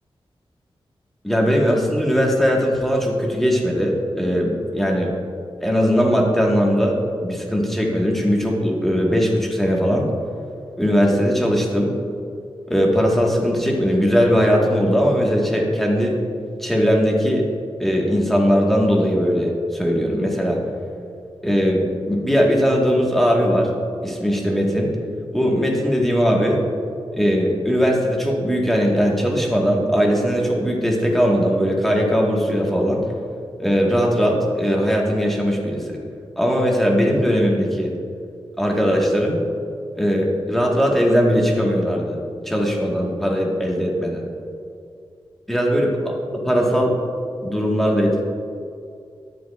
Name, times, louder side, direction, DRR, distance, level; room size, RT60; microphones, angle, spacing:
voice 1, 1.2-5.1 5.6-10.1 10.8-11.9 12.7-16.2 16.6-17.5 17.8-20.6 21.4-23.7 24.0-25.0 25.3-26.6 27.1-33.0 33.6-36.0 36.4-37.9 38.6-39.4 40.0-42.2 42.4-44.2 45.5-47.0 47.4-48.2, equal, ahead, -2 dB, 1.2 m, -19 dB
10.5 x 7.5 x 2.3 m, 2.4 s
wide cardioid pair, 110°, 10 cm